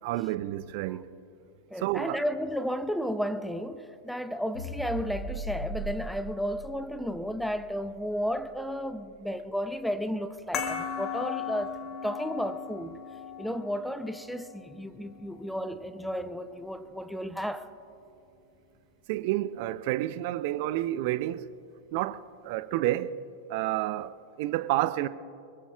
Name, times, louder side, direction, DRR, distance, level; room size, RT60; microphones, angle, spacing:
voice 1, 0.0-1.1 1.8-2.2 19.1-21.5 21.9-23.2 23.5-25.1, right 15 dB, 50° right, 0.5 m, -30 dB
voice 2, 1.7-13.0 13.4-17.7, equal, ahead, 0.7 m, -33 dB
sound 1, 4.5-9.0, right 1 dB, 80° left, 2.4 m, -40 dB
sound 2, 10.5-15.6, left 7 dB, 30° left, 2.0 m, -37 dB
25.0 x 22.5 x 2.4 m
figure-of-eight pair, 90°, 0 cm